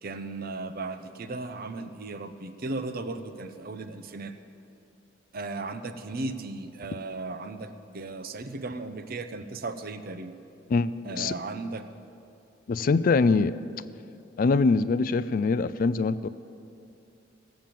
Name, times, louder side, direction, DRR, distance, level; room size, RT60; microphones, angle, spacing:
voice 1, 0.0-4.3 5.3-10.4 11.0-11.9, right 3 dB, 50° right, 9 dB, 0.7 m, -36 dB
voice 2, 10.7-11.4 12.7-13.6 14.4-16.3, left 4 dB, 50° left, 15 dB, 0.3 m, -23 dB
16.5 x 7.0 x 7.5 m, 2.6 s
head